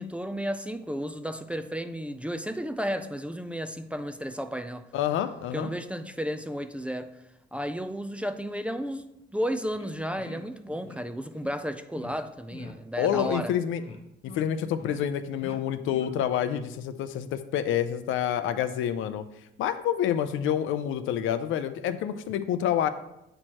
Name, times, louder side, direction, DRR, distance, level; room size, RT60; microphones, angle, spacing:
voice 1, 0.0-4.9 5.5-7.1 7.5-9.1 9.3-13.5, equal, 5° right, 9 dB, 0.3 m, -33 dB
voice 2, 4.9-5.7 13.0-13.8 14.2-19.2 19.6-22.9, left 10 dB, 80° left, 11 dB, 0.5 m, -28 dB
sound 1, 9.8-9.9 10.2-10.4 10.8-11.0 11.3-11.5 11.9-12.1 12.5-12.7 13.1-13.4 13.7-14.0 14.2-14.5 14.8-15.1 15.4-15.6 15.9-16.1, left 3 dB, 30° left, 0.8 m, -43 dB
7.6 x 4.4 x 2.9 m, 0.86 s
cardioid pair, 90°, 20 cm